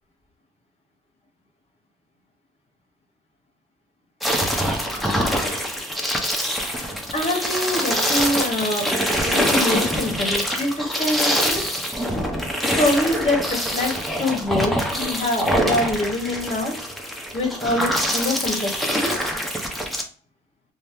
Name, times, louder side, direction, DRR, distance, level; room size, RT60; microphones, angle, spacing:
sound 1, 4.2-20.0, equal, ahead, 0.6 m, -24 dB
voice 1, 7.1-8.9 9.2-11.6 12.6-16.8 17.3-19.3, left 1 dB, 30° left, 1 dB, 0.9 m, -25 dB
2.7 x 2.0 x 3.4 m, 0.43 s
cardioid pair, 90°, 20 cm